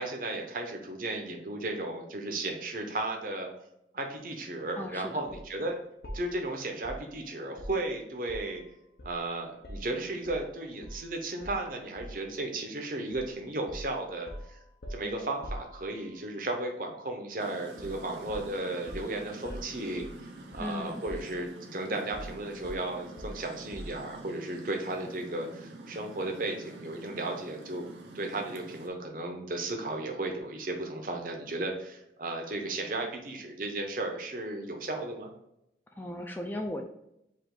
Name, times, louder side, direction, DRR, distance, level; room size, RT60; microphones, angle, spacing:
voice 1, 0.0-3.5 3.9-5.8 6.1-8.6 9.0-14.6 14.9-20.1 20.5-27.9 28.1-35.3, right 2 dB, 50° right, 3 dB, 0.8 m, -35 dB
voice 2, 4.8-5.3 20.6-21.0 36.0-36.8, left 1 dB, 10° left, 3 dB, 0.3 m, -36 dB
sound 1, 5.3-5.5 6.0-8.6 9.0-10.5 10.8-11.1 11.4-12.3 13.1-13.3 13.7-16.2 17.8-18.0 18.3-20.8 21.1-21.7 22.1-24.1, equal, 60° left, 0.7 m, -44 dB
sound 2, 17.4-28.9, right 2 dB, 85° right, 0.6 m, -47 dB
4.9 x 2.5 x 3.8 m, 0.80 s
head